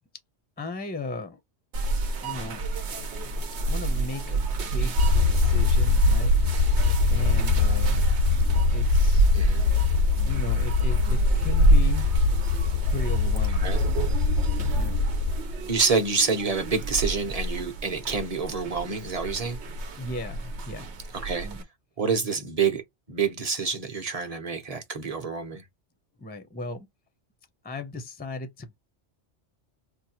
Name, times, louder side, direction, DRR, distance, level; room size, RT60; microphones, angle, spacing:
voice 1, 0.6-1.4 2.2-2.6 3.7-4.4 4.7-4.9 5.3-6.3 7.1-8.0 8.7-9.3 10.2-12.1 12.9-13.7 14.7-14.9 20.0-20.9 21.4-21.6 26.2-26.9 27.6-28.8, left 2 dB, 10° left, 0.5 m, -36 dB
sound 1, 1.7-21.6, right 2 dB, 65° right, 1.1 m, -29 dB
sound 2, 5.0-15.4, left 3 dB, 70° left, 0.8 m, -22 dB
voice 2, 9.3-9.7 13.5-13.8 14.6-14.8 15.7-19.6 21.2-21.5 22.0-22.8 23.1-25.6, right 5 dB, 35° right, 0.9 m, -27 dB
4.4 x 2.2 x 2.9 m
omnidirectional pair, 1.2 m